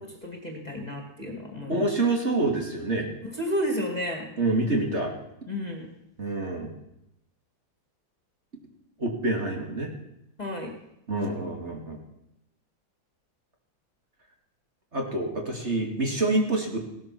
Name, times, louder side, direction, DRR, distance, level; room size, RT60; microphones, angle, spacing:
voice 1, 0.0-1.9 3.3-4.3 5.5-5.9 10.4-10.8, equal, 20° left, 2 dB, 2.5 m, -32 dB
voice 2, 1.7-3.1 4.4-5.1 6.2-6.7 9.0-9.9 11.1-12.0 14.9-16.8, right 2 dB, 35° right, 1 dB, 2.7 m, -27 dB
17.0 x 12.5 x 6.0 m, 0.82 s
omnidirectional pair, 2.0 m